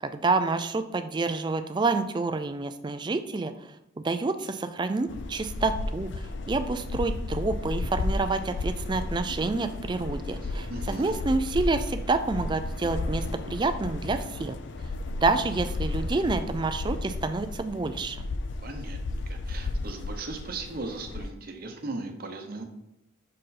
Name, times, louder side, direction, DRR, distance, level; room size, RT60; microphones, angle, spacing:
voice 1, 0.0-3.5 4.0-14.6 15.2-18.2, right 3 dB, 20° right, 10 dB, 0.3 m, -28 dB
sound 1, 5.1-21.3, left 2 dB, 60° left, 0.4 m, -33 dB
voice 2, 10.4-11.2 18.6-22.7, right 3 dB, 45° right, 5 dB, 0.8 m, -38 dB
6.3 x 4.4 x 4.1 m, 0.85 s
head